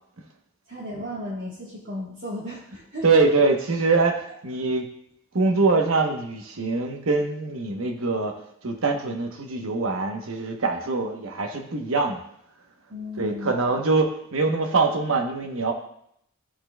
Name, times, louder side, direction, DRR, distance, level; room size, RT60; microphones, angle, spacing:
voice 1, 0.7-3.0 12.9-13.6, left 1 dB, 55° right, -7 dB, 1.4 m, -34 dB
voice 2, 3.0-4.9 5.3-8.3 8.6-12.2 13.2-15.7, right 3 dB, 75° right, 4 dB, 0.9 m, -23 dB
13.0 x 4.4 x 2.2 m, 0.72 s
head